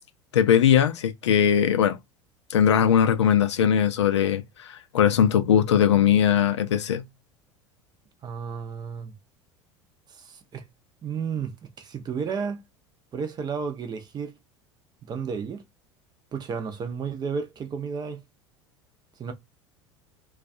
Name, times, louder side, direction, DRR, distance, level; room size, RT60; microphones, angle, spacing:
voice 1, 0.3-2.0 2.5-7.0, left 9 dB, 70° left, 0.4 m, -20 dB
voice 2, 8.2-9.1 10.2-10.6 11.0-12.6 13.1-14.3 15.0-15.6 16.3-18.2 19.2-19.3, right 6 dB, 25° right, 0.6 m, -32 dB
2.3 x 2.3 x 2.6 m
figure-of-eight pair, 75°, 15 cm